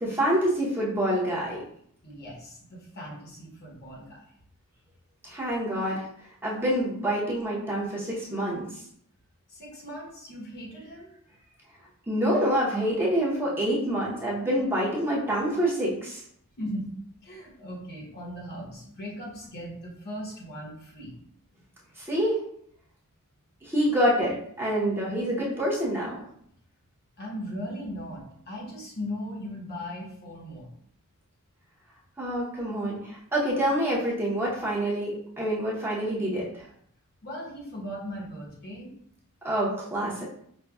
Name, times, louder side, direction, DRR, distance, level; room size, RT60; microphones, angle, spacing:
voice 1, 0.0-1.6 5.2-6.0 6.4-8.6 12.1-16.2 22.0-22.4 23.6-26.1 32.2-36.5 39.4-40.2, right 1 dB, 10° right, -6 dB, 0.8 m, -26 dB
voice 2, 2.0-4.2 9.5-11.1 16.6-16.9 17.2-21.1 27.2-30.7 37.2-38.9, equal, 45° left, -2 dB, 0.9 m, -38 dB
5.2 x 2.2 x 2.3 m, 0.67 s
head